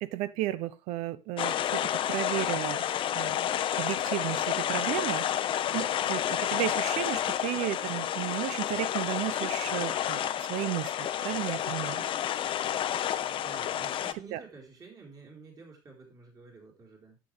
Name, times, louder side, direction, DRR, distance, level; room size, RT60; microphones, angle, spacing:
voice 1, 0.0-2.8 3.1-3.5 3.8-5.2 5.7-12.0 14.3-14.4, right 15 dB, 70° right, 0.8 m, -34 dB
sound 1, 1.4-14.1, left 10 dB, 45° left, 0.8 m, -30 dB
voice 2, 13.1-17.2, right 4 dB, 30° right, 4.0 m, -50 dB
10.5 x 7.6 x 3.3 m
cardioid pair, 125°, 12 cm